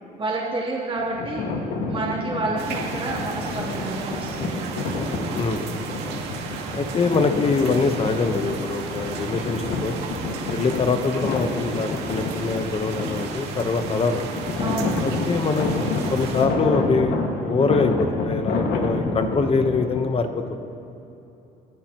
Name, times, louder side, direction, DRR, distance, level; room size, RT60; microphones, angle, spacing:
voice 1, 0.2-1.4 1.9-4.7 14.6-15.1, right 2 dB, 30° right, -7 dB, 3.4 m, -29 dB
sound 1, 1.0-20.0, left 3 dB, 70° left, 2.0 m, -29 dB
sound 2, 2.6-16.5, right 5 dB, 85° right, 1.9 m, -34 dB
voice 2, 5.3-6.2 6.8-10.0 10.5-14.4 15.0-20.6, left 4 dB, 35° left, 7 dB, 1.2 m, -24 dB
28.0 x 10.5 x 3.1 m, 3.0 s
cardioid pair, 110°, 17 cm